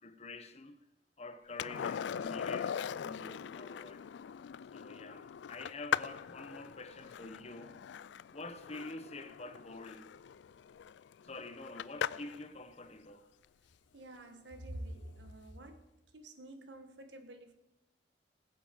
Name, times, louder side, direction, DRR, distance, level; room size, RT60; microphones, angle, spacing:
voice 1, 0.0-0.8 1.2-4.0 4.7-7.8 8.3-10.1 11.2-13.3, left 2 dB, 35° left, 1.0 m, -47 dB
Skateboard, 1.6-12.4 15.0-15.1, left 8 dB, 80° left, 0.3 m, -41 dB
voice 2, 13.9-15.9 16.1-17.5, right 1 dB, 85° right, 1.5 m, -48 dB
20.5 x 7.6 x 5.2 m
head